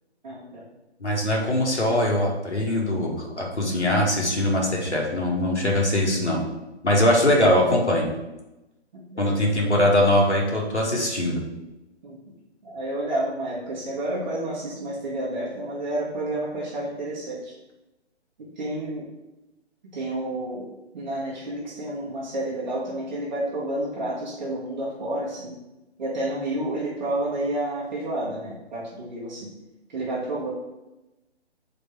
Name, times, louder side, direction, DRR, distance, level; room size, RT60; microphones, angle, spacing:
voice 1, 0.2-0.7 8.9-9.9 12.0-12.2 12.6-17.5 18.4-19.1 19.9-20.6 20.9-25.6 26.0-29.5 29.9-30.5, right 1 dB, 45° right, -7 dB, 1.7 m, -30 dB
voice 2, 1.0-6.4 6.8-8.1 9.2-11.4, left 1 dB, 85° left, -2 dB, 2.1 m, -22 dB
5.2 x 4.3 x 5.9 m, 1.0 s
figure-of-eight pair, 140°, 33 cm